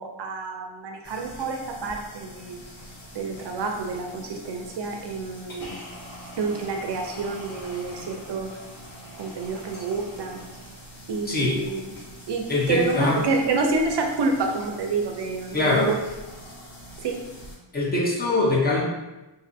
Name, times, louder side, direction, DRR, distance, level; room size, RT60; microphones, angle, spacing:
voice 1, 0.0-2.6 3.1-5.8 6.4-8.6 9.2-10.4 11.1-11.8 12.3-16.0 17.0-17.2, right 3 dB, 60° right, 2 dB, 0.5 m, -28 dB
sound 1, 1.0-17.5, equal, 70° left, 1.4 m, -43 dB
voice 2, 12.5-13.2 15.5-15.9 17.7-18.8, left 2 dB, 20° left, -4 dB, 0.6 m, -22 dB
2.7 x 2.4 x 2.5 m, 1.1 s
wide cardioid pair, 125°, 47 cm